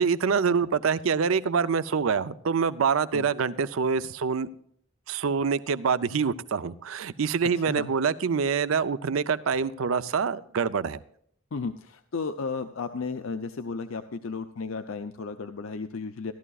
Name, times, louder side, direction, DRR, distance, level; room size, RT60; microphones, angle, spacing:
voice 1, 0.0-4.5 5.1-11.0, right 6 dB, 90° right, 15 dB, 0.5 m, -25 dB
voice 2, 11.5-16.3, left 4 dB, 85° left, 8 dB, 0.6 m, -34 dB
15.5 x 12.0 x 2.4 m, 0.65 s
head